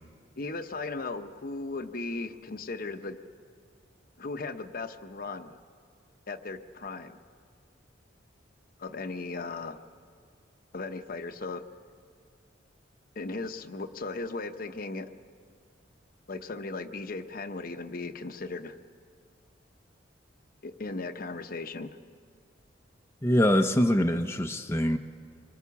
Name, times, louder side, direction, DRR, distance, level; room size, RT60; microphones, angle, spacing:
voice 1, 0.4-3.2 4.2-5.6 6.3-7.2 8.8-9.8 10.7-11.6 13.1-15.1 16.3-18.8 20.6-22.0, left 3 dB, 50° left, 8 dB, 0.8 m, -37 dB
voice 2, 23.2-25.0, equal, 15° left, 4 dB, 0.7 m, -24 dB
25.0 x 23.0 x 7.1 m, 2.1 s
head